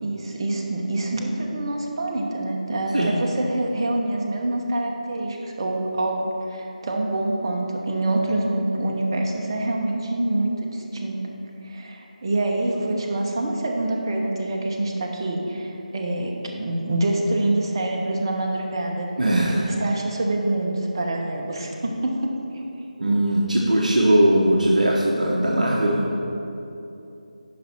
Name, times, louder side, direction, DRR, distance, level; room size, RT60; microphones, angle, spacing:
voice 1, 0.0-11.2 11.6-19.1 19.5-22.6, right 1 dB, 30° right, 1 dB, 0.9 m, -26 dB
voice 2, 19.2-19.7 23.0-26.0, right 1 dB, 60° right, -3 dB, 1.0 m, -19 dB
10.5 x 5.4 x 4.4 m, 2.9 s
figure-of-eight pair, 160°, 4 cm